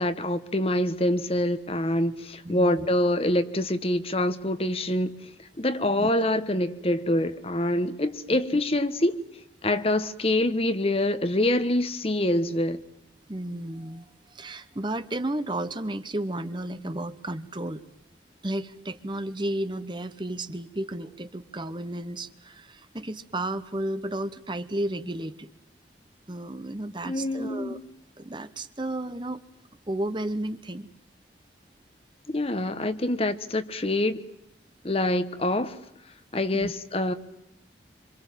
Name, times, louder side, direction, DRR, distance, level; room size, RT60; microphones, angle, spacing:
voice 1, 0.0-5.1 5.6-9.3 9.6-12.8 27.0-27.8 32.3-34.2 34.8-35.8 36.3-37.1, left 1 dB, 30° left, 1.1 m, -25 dB
voice 2, 2.4-2.9 6.0-6.2 13.3-17.8 18.4-25.5 26.3-27.8 28.2-29.4 29.9-30.9 36.5-36.7, right 1 dB, 25° right, 1.0 m, -33 dB
26.5 x 26.0 x 7.4 m
head